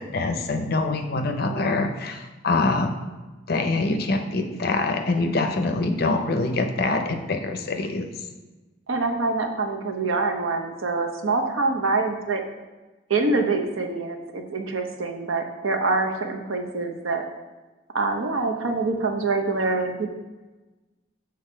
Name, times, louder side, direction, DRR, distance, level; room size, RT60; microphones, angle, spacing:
voice 1, 0.0-2.9 3.5-8.1, left 3 dB, 50° left, 5 dB, 0.6 m, -24 dB
voice 2, 1.4-1.8 8.9-12.4 13.1-17.2 17.9-20.1, right 3 dB, 85° right, 4 dB, 0.8 m, -25 dB
6.9 x 3.9 x 5.4 m, 1.2 s
head